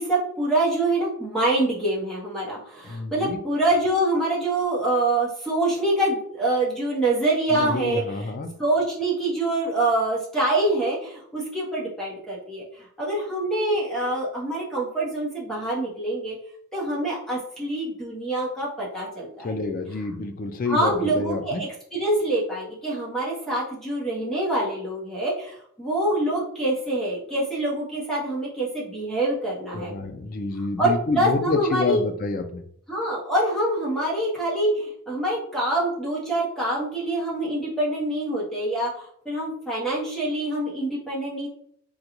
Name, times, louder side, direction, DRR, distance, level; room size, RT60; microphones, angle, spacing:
voice 1, 0.0-8.3 8.6-16.4 16.7-19.5 20.6-29.9 30.8-32.0 32.9-41.5, right 1 dB, ahead, -6 dB, 0.8 m, -25 dB
voice 2, 2.9-3.4 7.5-8.5 19.4-21.6 29.7-32.6, left 3 dB, 40° left, 6 dB, 0.3 m, -28 dB
3.8 x 2.2 x 2.9 m, 0.66 s
head